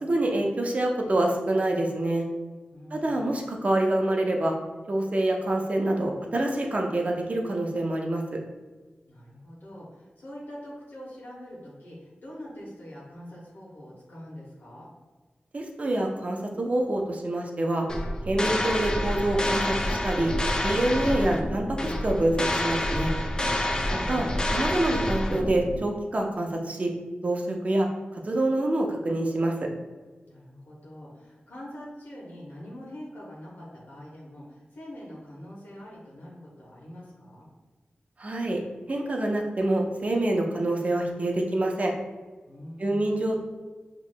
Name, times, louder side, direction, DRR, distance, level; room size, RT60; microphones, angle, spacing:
voice 1, 0.0-2.2 2.9-4.6 4.9-8.4 15.5-17.9 18.3-20.3 20.6-23.1 23.9-24.3 24.5-26.9 27.2-27.9 28.1-29.7 38.2-38.6 38.9-41.9 42.8-43.4, right 1 dB, 40° right, 1 dB, 0.7 m, -26 dB
voice 2, 2.7-3.4 9.1-14.9 23.7-24.4 30.3-37.5 42.5-43.3, equal, 85° left, -6 dB, 1.3 m, -44 dB
sound 1, 17.9-25.8, left 1 dB, 25° left, 0.5 m, -28 dB
6.0 x 3.0 x 2.2 m, 1.3 s
wide cardioid pair, 95°, 4 cm